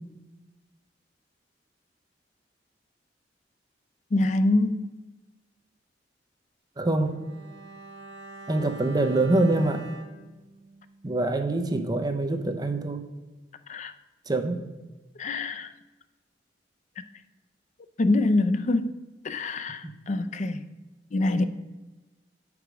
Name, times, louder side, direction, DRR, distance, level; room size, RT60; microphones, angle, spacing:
voice 1, 4.1-4.9 13.7-13.9 15.2-15.7 18.0-19.0 19.2-20.6 21.1-21.4, left 2 dB, 40° left, 11 dB, 0.4 m, -25 dB
voice 2, 6.8-7.2 8.5-9.8 11.0-13.0 14.3-14.6, right 2 dB, 20° right, 6 dB, 0.5 m, -25 dB
Bowed string instrument, 7.1-11.5 11.8-11.9, right 2 dB, 75° right, 0.9 m, -45 dB
7.9 x 4.8 x 4.9 m, 1.2 s
head